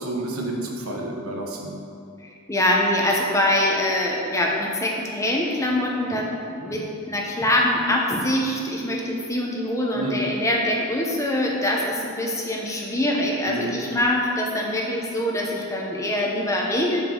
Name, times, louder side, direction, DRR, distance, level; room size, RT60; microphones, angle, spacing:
voice 1, 0.0-1.8 9.9-10.2 13.4-13.8, right 2 dB, 80° right, 0 dB, 1.3 m, -30 dB
voice 2, 2.5-17.0, left 1 dB, 15° left, -1 dB, 1.0 m, -24 dB
12.5 x 5.5 x 4.0 m, 2.6 s
head